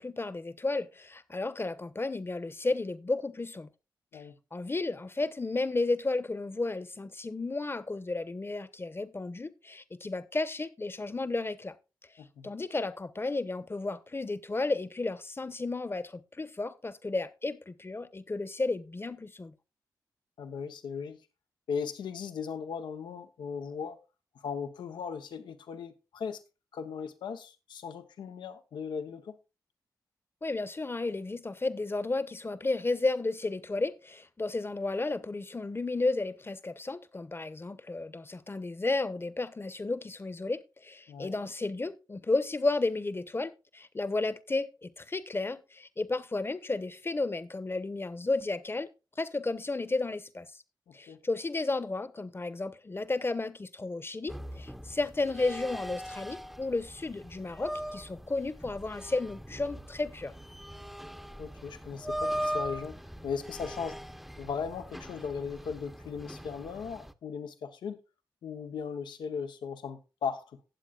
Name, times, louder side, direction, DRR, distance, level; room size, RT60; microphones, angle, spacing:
voice 1, 0.0-3.7 4.1-4.2 4.5-11.7 12.4-19.5 30.4-48.9 49.2-50.5 50.9-60.3, left 3 dB, 30° left, 0.9 m, -33 dB
voice 2, 12.2-12.5 20.4-21.2 21.7-24.0 24.3-26.4 26.7-29.4 41.1-41.3 50.9-51.2 61.4-64.0 64.4-68.0 68.4-70.6, left 6 dB, 90° left, 0.9 m, -38 dB
sound 1, 54.3-67.1, equal, ahead, 0.8 m, -40 dB
18.0 x 7.5 x 2.4 m
cardioid pair, 50°, 8 cm